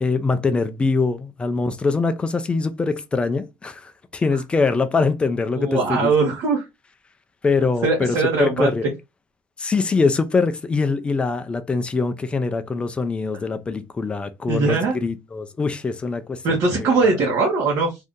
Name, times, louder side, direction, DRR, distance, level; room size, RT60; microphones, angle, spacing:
voice 1, 0.0-6.1 7.4-8.8 9.6-17.1, left 4 dB, 15° left, 0.3 m, -23 dB
voice 2, 5.6-6.6 7.8-8.7 14.5-14.9 16.4-18.0, right 3 dB, 50° right, 1.0 m, -20 dB
2.7 x 2.4 x 3.5 m
cardioid pair, 170°, 8 cm